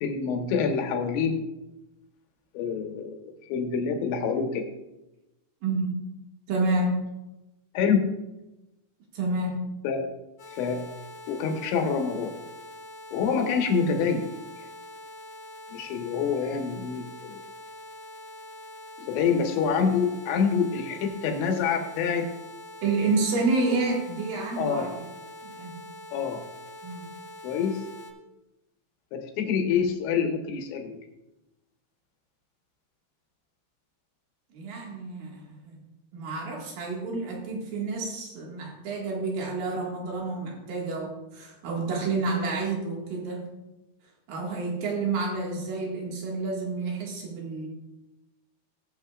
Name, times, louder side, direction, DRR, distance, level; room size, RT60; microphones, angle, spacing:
voice 1, 0.0-1.4 2.5-3.1 3.5-4.6 7.7-8.1 9.8-10.0 10.6-10.8 11.3-12.3 13.1-14.3 14.6-14.7 15.7-17.4 19.1-22.3 23.7-23.8 24.6-24.9 26.1-26.4 27.4-27.8 29.1-31.0, left 6 dB, 75° left, 3 dB, 3.3 m, -26 dB
voice 2, 6.5-7.0 9.1-9.7 22.8-25.1 25.4-25.8 26.8-27.1 34.5-35.8 36.1-43.5 44.3-47.7, right 3 dB, 55° right, -1 dB, 3.1 m, -29 dB
sound 1, 10.4-28.1, left 1 dB, 50° left, 2.2 m, -44 dB
20.0 x 7.8 x 2.4 m, 0.98 s
omnidirectional pair, 5.5 m